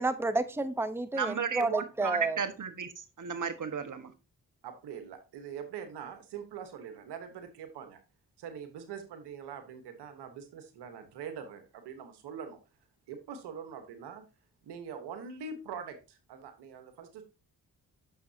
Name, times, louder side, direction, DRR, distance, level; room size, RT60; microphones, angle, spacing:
voice 1, 0.0-2.4, right 2 dB, 5° right, 0.9 m, -30 dB
voice 2, 1.1-4.1, right 6 dB, 50° right, 1.4 m, -34 dB
voice 3, 4.6-8.0 8.4-12.6 13.1-14.2 14.6-17.2, right 7 dB, 85° right, 1.3 m, -43 dB
9.4 x 6.5 x 2.8 m
supercardioid pair, 45°, 39 cm